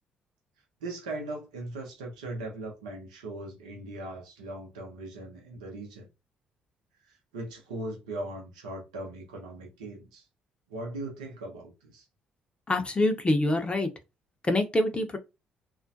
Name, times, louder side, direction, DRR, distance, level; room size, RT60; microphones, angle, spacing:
voice 1, 0.8-6.1 7.0-10.2 10.7-12.1, right 2 dB, 85° right, 0.7 m, -39 dB
voice 2, 12.7-13.9 14.4-15.2, left 1 dB, 25° left, 0.6 m, -25 dB
2.3 x 2.1 x 2.6 m
hypercardioid pair, 50°, 4 cm